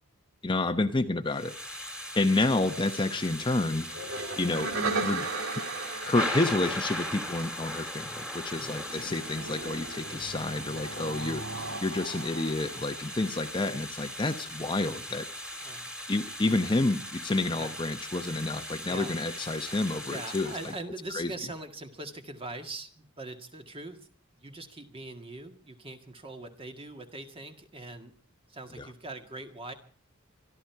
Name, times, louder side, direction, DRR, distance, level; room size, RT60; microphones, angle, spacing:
voice 1, 0.4-1.5 2.2-3.9 4.4-4.7 5.0-5.3 5.5-5.6 6.0-11.4 11.8-15.3 16.1-20.5 21.1-21.3 28.8-28.9, left 2 dB, 25° left, 7 dB, 0.9 m, -29 dB
Thunder / Rain, 1.3-20.8, equal, 5° right, 2.2 m, -39 dB
sound 1, 3.9-7.5 8.9-13.5, right 3 dB, 70° right, 2.7 m, -37 dB
voice 2, 8.5-8.8 15.6-15.9 17.6-17.7 18.8-19.1 20.1-24.1 24.4-28.1 28.5-29.7, right 2 dB, 25° right, 6 dB, 1.9 m, -42 dB
25.5 x 12.5 x 4.6 m, 0.43 s
head